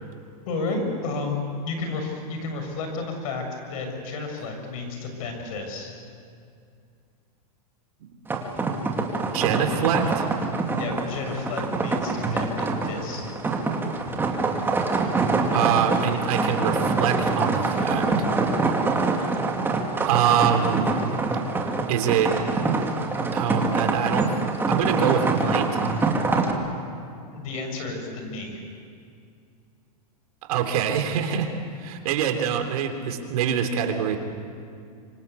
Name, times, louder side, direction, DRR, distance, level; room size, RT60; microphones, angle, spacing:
voice 1, 0.5-5.9 10.8-13.3 27.3-28.6, left 3 dB, 60° left, 4 dB, 7.1 m, -31 dB
sound 1, 8.3-26.5, right 3 dB, 10° right, 2.6 m, -25 dB
voice 2, 9.3-10.3 15.5-18.1 20.1-20.9 21.9-22.4 23.3-24.3 24.7-25.8 30.5-31.5 31.8-34.2, right 8 dB, 65° right, 5 dB, 3.5 m, -24 dB
26.5 x 25.0 x 8.3 m, 2.4 s
supercardioid pair, 140°, 20 cm